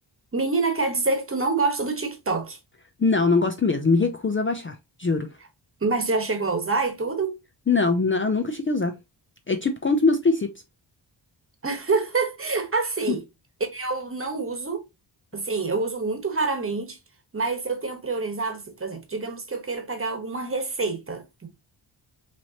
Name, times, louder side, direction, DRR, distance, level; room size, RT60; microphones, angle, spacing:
voice 1, 0.3-2.6 5.8-7.4 11.6-13.2 13.7-14.8 15.3-17.0 17.3-21.5, right 3 dB, 30° right, 1.2 m, -26 dB
voice 2, 3.0-5.3 7.7-9.0 9.5-10.5 13.1-13.2, left 4 dB, 30° left, 0.5 m, -22 dB
5.9 x 3.2 x 2.8 m
wide cardioid pair, 155°, 45 cm